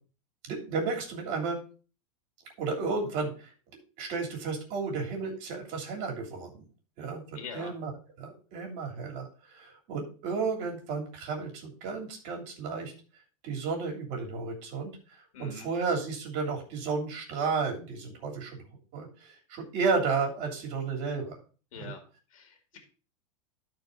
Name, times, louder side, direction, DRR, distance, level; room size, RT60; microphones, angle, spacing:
voice 1, 0.4-1.6 2.6-3.5 4.0-6.6 7.0-7.2 7.5-7.9 8.2-12.9 13.4-14.9 15.4-18.6 18.9-21.3 21.7-21.9, right 4 dB, 50° right, 0 dB, 3.1 m, -32 dB
voice 2, 7.4-7.7 15.3-15.7 21.7-22.0 22.3-22.8, left 5 dB, 80° left, 4 dB, 2.2 m, -43 dB
12.5 x 4.5 x 3.9 m, 0.37 s
supercardioid pair, 145°, 17 cm